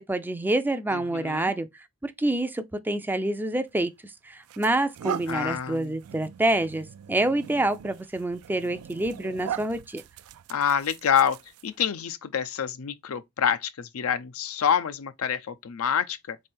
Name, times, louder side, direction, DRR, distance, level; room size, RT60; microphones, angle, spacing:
voice 1, 0.0-10.0, right 1 dB, 10° right, 0.4 m, -27 dB
voice 2, 0.9-1.5 5.3-5.9 10.5-16.4, left 8 dB, 70° left, 0.5 m, -27 dB
sound 1, 3.7-3.9 4.4-11.8, right 9 dB, 85° right, 0.4 m, -40 dB
3.7 x 3.3 x 4.3 m
head